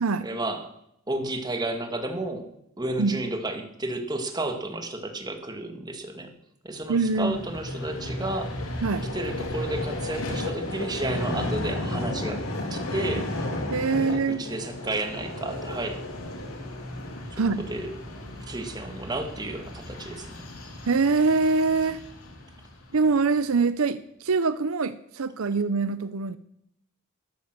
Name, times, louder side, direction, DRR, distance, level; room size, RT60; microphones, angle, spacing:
voice 1, 0.2-0.7 1.1-6.3 6.6-8.6 9.1-13.3 14.0-16.0 17.3-17.9 18.5-20.4, right 2 dB, 20° right, 5 dB, 1.8 m, -32 dB
Vehicle, 6.9-23.2, left 1 dB, 80° left, 3.4 m, -34 dB
voice 2, 6.9-7.4 8.8-9.1 13.7-14.4 17.4-17.6 20.8-22.0 22.9-26.4, right 4 dB, 75° right, 14 dB, 0.6 m, -24 dB
13.5 x 12.0 x 6.7 m, 0.76 s
head